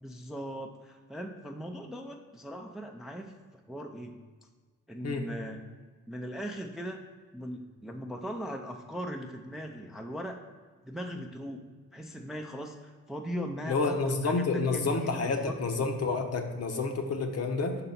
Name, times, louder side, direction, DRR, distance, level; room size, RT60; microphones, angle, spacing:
voice 1, 0.0-3.3 3.7-4.2 4.9-5.6 6.1-7.0 7.3-10.4 10.8-11.6 11.9-15.6, equal, ahead, 3 dB, 0.4 m, -39 dB
voice 2, 13.6-17.8, left 3 dB, 50° left, 4 dB, 0.9 m, -29 dB
5.4 x 4.0 x 5.6 m, 1.4 s
cardioid pair, 100°, 31 cm